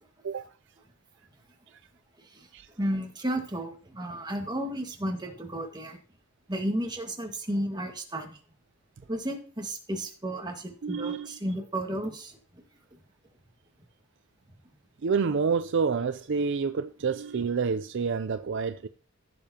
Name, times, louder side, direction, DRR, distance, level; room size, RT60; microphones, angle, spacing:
voice 1, 2.8-6.0 6.5-8.4 9.1-12.4, right 1 dB, 20° right, 1.7 m, -33 dB
voice 2, 10.8-11.4 15.0-18.9, right 5 dB, 60° right, 0.5 m, -28 dB
15.5 x 6.8 x 2.9 m
head